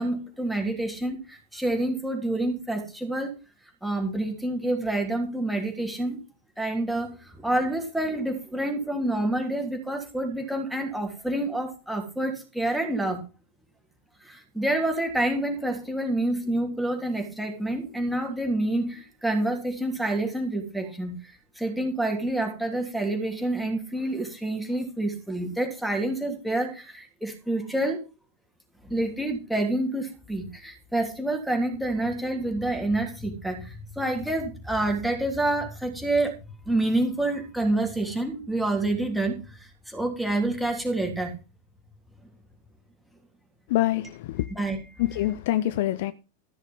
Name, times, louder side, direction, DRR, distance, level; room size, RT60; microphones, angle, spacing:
voice 1, 0.0-3.3 3.8-6.2 6.6-13.2 14.2-21.2 21.6-28.0 28.8-36.3 36.6-39.4 39.9-41.3 44.5-44.8, right 1 dB, ahead, 3.2 m, -28 dB
voice 2, 43.7-44.5 45.0-46.1, left 14 dB, 50° left, 0.5 m, -25 dB
13.5 x 6.5 x 5.4 m
figure-of-eight pair, 90°, 0 cm